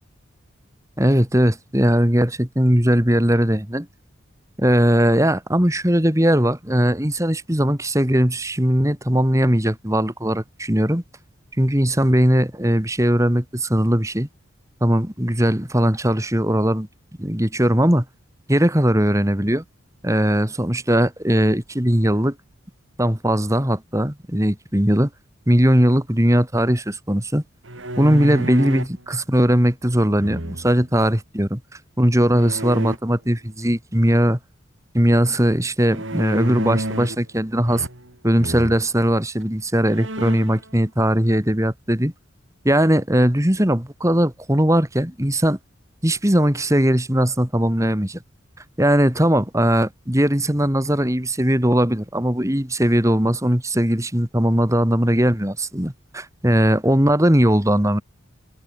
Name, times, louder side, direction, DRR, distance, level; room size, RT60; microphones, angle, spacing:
voice 1, 1.0-3.9 4.6-11.0 11.6-14.3 14.8-16.9 17.2-18.0 18.5-19.6 20.0-22.3 23.0-25.1 25.5-27.4 28.0-31.6 32.0-34.4 34.9-37.9 38.2-42.1 42.6-45.6 46.0-48.2 48.8-58.0, equal, 15° right, 2.8 m, -19 dB
sound 1, 27.6-29.0 30.2-30.9 32.4-33.0 35.9-37.3 37.6-38.1 38.4-38.8 39.4-39.5 39.9-40.6, right 1 dB, 70° right, 6.1 m, -29 dB
head